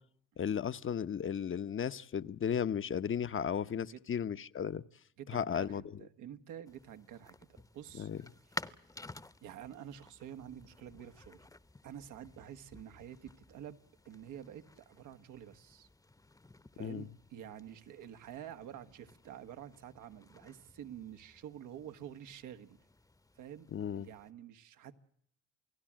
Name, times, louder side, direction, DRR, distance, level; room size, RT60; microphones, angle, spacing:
voice 1, 0.4-4.8 5.3-5.8 8.0-8.2 16.8-17.1 23.7-24.1, left 8 dB, 45° left, 13 dB, 0.9 m, -35 dB
voice 2, 5.2-8.1 8.5-8.8 9.4-11.4 11.8-13.8 14.0-15.9 16.7-22.8 23.4-23.7 24.0-25.1, right 10 dB, 90° right, 8 dB, 1.6 m, -49 dB
sound 1, 6.7-24.3, left 2 dB, 10° left, 0.9 m, -53 dB
28.5 x 18.5 x 7.5 m, 0.69 s
cardioid pair, 90°, 30 cm